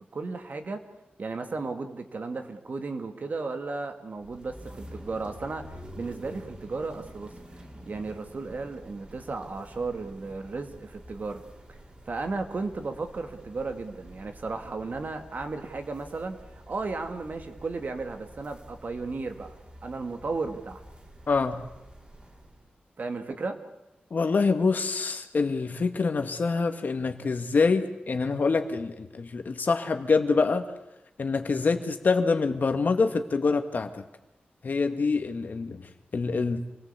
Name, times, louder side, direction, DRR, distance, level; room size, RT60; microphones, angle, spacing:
voice 1, 0.1-0.8 1.2-11.4 12.1-19.5 19.8-20.8 23.0-23.6, right 3 dB, 55° right, 6 dB, 2.3 m, -34 dB
sound 1, 4.2-22.7, equal, 30° right, 3.7 m, -48 dB
voice 2, 21.3-21.6 24.1-30.6 31.2-34.0 34.6-35.8 36.1-36.6, left 4 dB, 55° left, 7 dB, 2.0 m, -25 dB
28.0 x 18.5 x 8.4 m, 0.94 s
wide cardioid pair, 125°, 3 cm